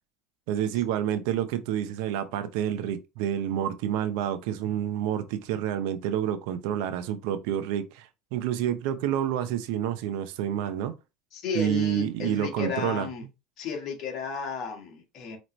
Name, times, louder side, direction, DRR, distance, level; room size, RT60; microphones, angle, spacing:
voice 1, 0.5-10.9 11.5-13.1, right 10 dB, 75° right, 0.7 m, -28 dB
voice 2, 11.3-13.2 13.6-15.4, left 6 dB, 55° left, 1.5 m, -33 dB
5.1 x 3.1 x 3.1 m
supercardioid pair, 125°, 0 cm